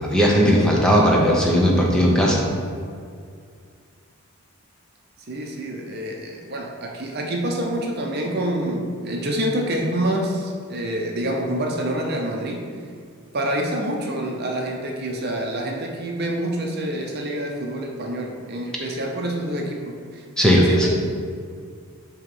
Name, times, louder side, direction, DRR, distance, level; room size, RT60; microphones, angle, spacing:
voice 1, 0.0-2.4 20.4-20.9, equal, 5° left, -3 dB, 0.7 m, -17 dB
voice 2, 5.3-12.6 13.3-20.2 20.5-20.9, right 1 dB, 45° right, 0 dB, 0.7 m, -27 dB
7.9 x 3.0 x 5.4 m, 2.2 s
head